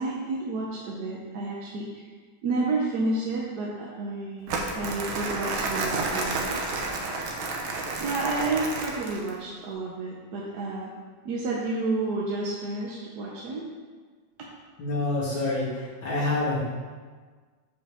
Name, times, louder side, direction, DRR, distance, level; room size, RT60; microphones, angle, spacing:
voice 1, 0.0-2.1 2.4-6.5 8.0-10.9 11.2-13.7, right 3 dB, 60° right, -3 dB, 1.3 m, -30 dB
Crumpling crinkling, 4.5-9.3, right 3 dB, 90° right, 1.7 m, -30 dB
voice 2, 14.8-16.6, left 2 dB, 80° left, -9 dB, 3.3 m, -27 dB
10.0 x 5.1 x 3.5 m, 1.5 s
omnidirectional pair, 2.1 m